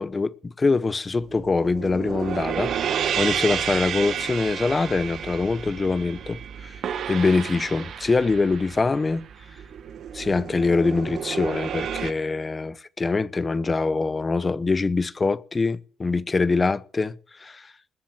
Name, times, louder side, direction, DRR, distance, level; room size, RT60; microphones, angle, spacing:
voice 1, 0.0-2.7 3.2-6.8 7.1-9.2 10.1-17.7, left 3 dB, 20° left, 0.8 m, -24 dB
sound 1, 1.2-12.1, right 8 dB, 55° right, 1.4 m, -31 dB
20.5 x 7.4 x 7.6 m
cardioid pair, 135°, 0 cm